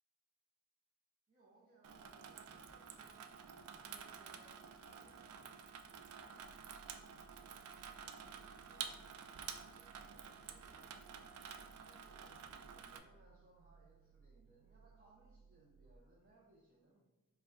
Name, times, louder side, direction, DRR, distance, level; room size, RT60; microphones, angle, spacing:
voice 1, 1.3-3.3 3.7-4.5 4.9-5.4 8.6-11.3 11.8-17.0, right 2 dB, 40° right, -5 dB, 0.6 m, -67 dB
Water tap faucet / Sink (filling or washing), 1.8-13.0, right 7 dB, 90° right, 0.4 m, -51 dB
sound 1, 6.4-16.0, right 5 dB, 60° left, 0.4 m, -65 dB
4.8 x 2.2 x 3.8 m, 1.1 s
head